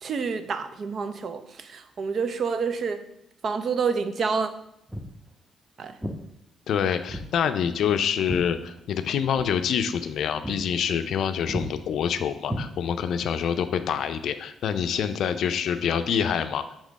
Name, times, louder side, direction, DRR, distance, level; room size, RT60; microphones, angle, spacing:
voice 1, 0.0-3.0 3.4-4.5 5.8-6.0, right 5 dB, 55° right, 10 dB, 0.5 m, -28 dB
Walk footsteps, 4.9-5.2 6.0-6.2 7.1-7.3 7.6-9.1 9.3-9.5 10.0-10.1 10.4-10.6 10.9-11.2 11.5-11.7 12.4-13.1, equal, ahead, 0.8 m, -34 dB
voice 2, 6.7-16.8, left 8 dB, 70° left, 9 dB, 0.4 m, -26 dB
5.1 x 3.6 x 5.2 m, 0.79 s
cardioid pair, 90°, 0 cm